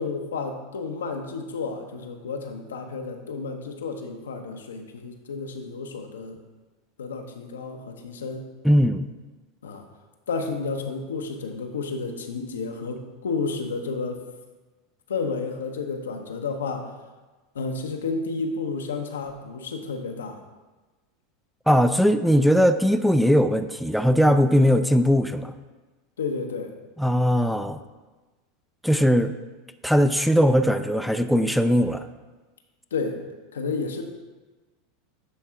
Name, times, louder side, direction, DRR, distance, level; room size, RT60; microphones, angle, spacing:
voice 1, 0.0-6.4 7.0-8.5 9.6-9.8 10.3-14.2 15.1-16.9 17.5-20.4 26.2-26.7 32.9-33.2 33.5-34.0, left 4 dB, 90° left, 4 dB, 0.8 m, -31 dB
voice 2, 8.6-9.1 21.7-25.5 27.0-27.8 28.8-29.3 29.8-32.1, equal, ahead, 10 dB, 0.4 m, -19 dB
9.6 x 3.6 x 4.5 m, 1.2 s
hypercardioid pair, 100°, 0 cm